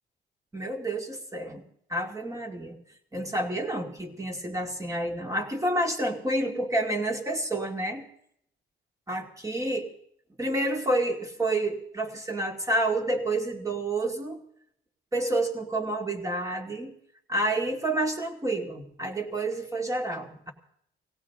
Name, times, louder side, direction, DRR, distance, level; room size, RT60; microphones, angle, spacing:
voice 1, 0.5-1.6 1.9-2.8 3.1-8.1 9.1-9.9 10.4-14.4 15.1-16.9 17.3-20.5, right 1 dB, 15° right, 3 dB, 2.3 m, -29 dB
18.0 x 17.0 x 3.7 m, 0.68 s
cardioid pair, 90°, 20 cm